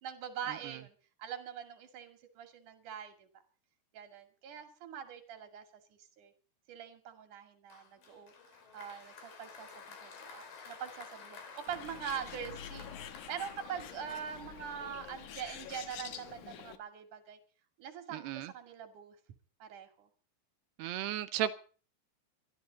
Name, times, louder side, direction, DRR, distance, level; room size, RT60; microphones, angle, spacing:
voice 1, 0.0-3.3 3.9-6.3 6.7-8.3 8.7-12.9 13.3-17.4 17.8-19.2 19.6-20.1, right 8 dB, 50° right, 6 dB, 3.5 m, -43 dB
Applause, 7.7-14.8, left 5 dB, 55° left, 4.1 m, -52 dB
Bird, 11.7-16.8, left 10 dB, 80° left, 1.7 m, -47 dB
voice 2, 18.1-18.5 20.8-21.5, right 11 dB, 75° right, 10 dB, 2.8 m, -34 dB
23.0 x 14.5 x 4.1 m, 0.39 s
omnidirectional pair, 5.2 m